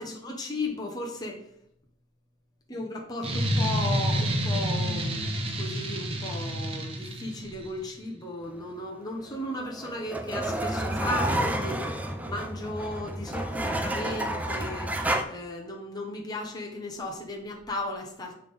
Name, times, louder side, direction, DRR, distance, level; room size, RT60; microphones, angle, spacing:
voice 1, 0.0-1.4 2.7-5.3 5.6-18.3, left 1 dB, 20° left, 0 dB, 0.9 m, -35 dB
sound 1, 3.2-7.7, equal, 30° right, 1.0 m, -28 dB
sound 2, 9.3-15.2, right 1 dB, 10° right, 0.4 m, -30 dB
7.4 x 3.4 x 5.3 m, 0.71 s
head